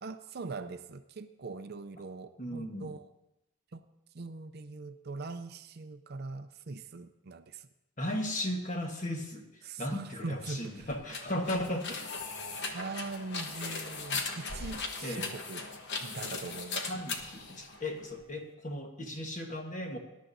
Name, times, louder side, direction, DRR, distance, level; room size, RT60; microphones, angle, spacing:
voice 1, 0.0-3.1 3.7-3.8 4.1-7.7 9.6-10.9 12.4-15.7 16.0-17.0, right 3 dB, 45° right, 10 dB, 0.5 m, -42 dB
voice 2, 2.4-2.9 8.0-12.1 15.0-15.3 16.8-20.0, left 1 dB, 35° left, 3 dB, 1.3 m, -36 dB
sound 1, 10.3-18.2, left 4 dB, 50° left, 1.1 m, -39 dB
20.0 x 11.5 x 2.7 m, 0.93 s
head